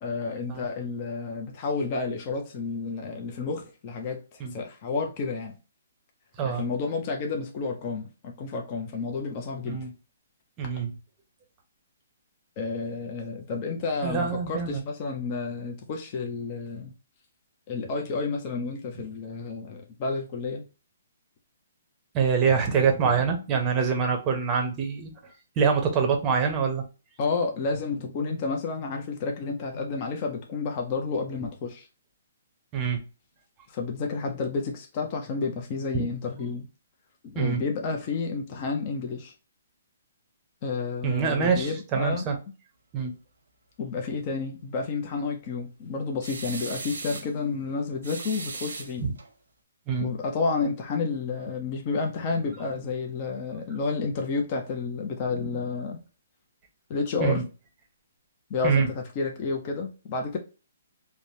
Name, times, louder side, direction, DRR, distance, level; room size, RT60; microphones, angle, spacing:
voice 1, 0.0-5.5 6.4-9.9 12.6-16.9 17.7-20.6 27.2-31.9 33.7-36.7 37.2-39.3 40.6-42.3 43.8-49.1 50.0-56.0 56.9-57.5 58.5-60.4, left 4 dB, 30° left, 0.5 m, -30 dB
voice 2, 10.6-10.9 14.0-14.8 22.1-25.1 25.6-26.8 32.7-33.0 35.9-36.1 37.4-37.6 41.0-42.4 42.9-43.2 49.9-50.1 57.2-57.4 58.6-58.9, right 6 dB, 20° right, 0.7 m, -25 dB
sound 1, 46.2-47.3 48.0-49.3, right 4 dB, 90° right, 0.9 m, -37 dB
3.3 x 2.1 x 2.6 m
hypercardioid pair, 160°, 0 cm